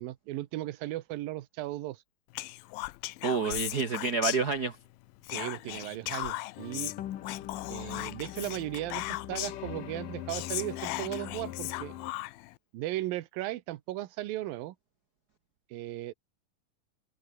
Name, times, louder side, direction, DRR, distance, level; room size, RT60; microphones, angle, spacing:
voice 1, 0.0-2.0 5.3-6.9 7.7-11.9 12.7-14.8 15.7-16.1, right 16 dB, 85° right, 2.8 m, -36 dB
Whispering, 2.3-4.9 5.2-9.7 10.0-10.1 10.3-12.5, left 19 dB, 90° left, 2.5 m, -37 dB
voice 2, 3.2-4.8, right 4 dB, 50° right, 1.1 m, -28 dB
sound 1, 6.6-12.1, left 12 dB, 70° left, 3.0 m, -41 dB
omnidirectional pair, 4.0 m